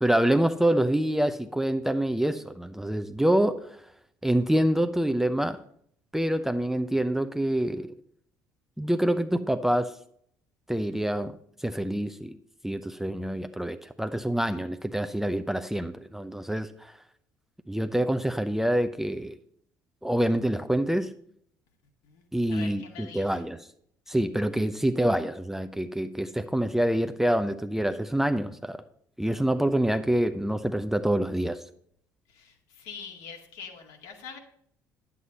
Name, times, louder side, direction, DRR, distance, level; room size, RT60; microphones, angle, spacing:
voice 1, 0.0-3.8 4.2-5.6 6.1-7.9 8.8-9.9 10.7-11.3 11.6-12.3 12.6-16.9 17.7-19.4 20.0-21.1 22.3-23.6 24.1-28.8 29.2-31.6, right 1 dB, 5° right, 0.7 m, -26 dB
voice 2, 22.0-23.4 32.3-34.4, left 6 dB, 65° left, 2.2 m, -44 dB
11.0 x 8.3 x 4.1 m
figure-of-eight pair, 55°, 9 cm